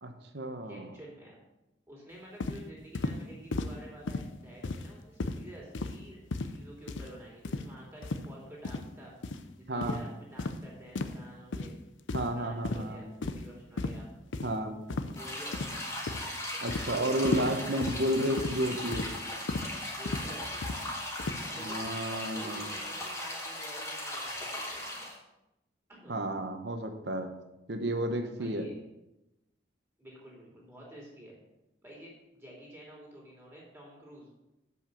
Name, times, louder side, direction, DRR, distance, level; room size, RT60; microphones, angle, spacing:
voice 1, 0.0-0.9 9.7-10.0 12.1-13.0 14.4-14.7 16.6-19.1 21.6-22.7 26.1-27.3 27.7-28.7, right 1 dB, 60° right, 6 dB, 1.1 m, -32 dB
voice 2, 0.6-1.4 1.9-6.2 6.5-9.2 9.6-11.7 12.3-14.1 15.1-15.9 19.9-20.8 21.5-25.1 25.9-26.2 28.3-28.8 30.0-31.4 31.8-34.3, right 1 dB, 15° right, -4 dB, 2.9 m, -50 dB
sound 1, 2.4-2.6 2.9-3.2 3.5-3.7 4.1-4.3 4.6-4.9 5.2-5.4 5.7-6.0 6.3-6.6 6.9-7.1 7.4-7.7 8.0-8.2 8.6-8.8 9.2-9.4 9.8-10.0 10.4-10.6 10.9-11.2 11.5-11.7 12.1-12.4 12.6-12.8 13.2-13.5 13.8-14.0 14.3-14.5 14.9-15.2 15.5-16.3 16.7-16.9 17.2-17.5 17.8-18.0 18.4-18.6 18.9-19.1 19.5-19.7 20.0-20.3 20.6-20.8 21.2-21.4, left 3 dB, 80° left, 0.6 m, -34 dB
sound 2, 15.2-25.2, left 1 dB, 15° left, 1.7 m, -38 dB
7.6 x 5.6 x 6.8 m, 0.92 s
head